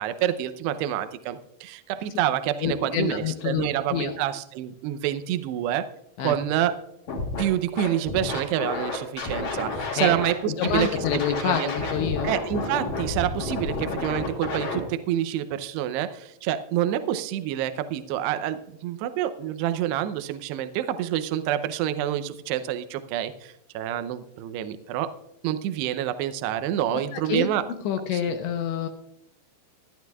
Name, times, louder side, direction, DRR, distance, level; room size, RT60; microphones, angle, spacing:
voice 1, 0.0-5.9 6.2-6.8 7.4-10.9 11.4-11.7 12.2-25.1 25.4-27.6 28.1-28.3, right 11 dB, 80° right, 10 dB, 2.4 m, -27 dB
voice 2, 2.6-4.2 6.2-6.4 10.0-10.1 10.5-12.3 27.1-27.5 27.8-28.9, left 9 dB, 75° left, 6 dB, 2.9 m, -27 dB
Scratching (performance technique), 7.1-7.4 7.8-10.3 10.6-14.8, left 3 dB, 50° left, 4.3 m, -30 dB
21.5 x 11.5 x 2.3 m, 0.77 s
omnidirectional pair, 5.6 m